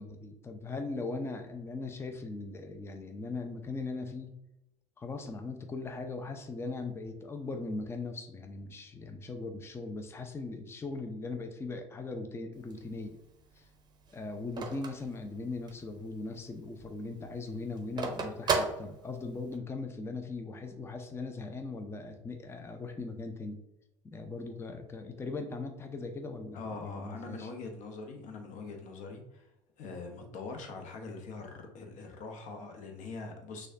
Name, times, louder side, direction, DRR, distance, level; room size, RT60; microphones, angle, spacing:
voice 1, 0.0-4.3 5.0-13.2 13.5-13.7 14.1-23.6 24.0-27.5, left 3 dB, 15° left, 6 dB, 0.5 m, -39 dB
Telephone, 12.5-15.9 16.3-16.4 16.7-19.6, right 4 dB, 25° right, 0.8 m, -35 dB
voice 2, 26.5-29.5 29.8-33.7, left 3 dB, 50° left, 4 dB, 0.9 m, -43 dB
6.2 x 2.3 x 2.6 m, 0.93 s
figure-of-eight pair, 65°, 17 cm